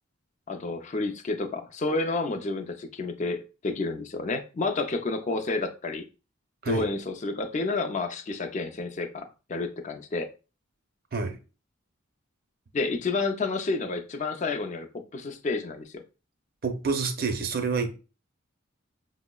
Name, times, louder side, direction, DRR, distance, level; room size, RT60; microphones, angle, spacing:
voice 1, 0.5-6.0 6.7-10.3 12.7-16.0, left 3 dB, 35° left, 0.4 m, -30 dB
voice 2, 16.6-18.0, right 4 dB, 50° right, 0.5 m, -28 dB
5.7 x 2.0 x 2.2 m
head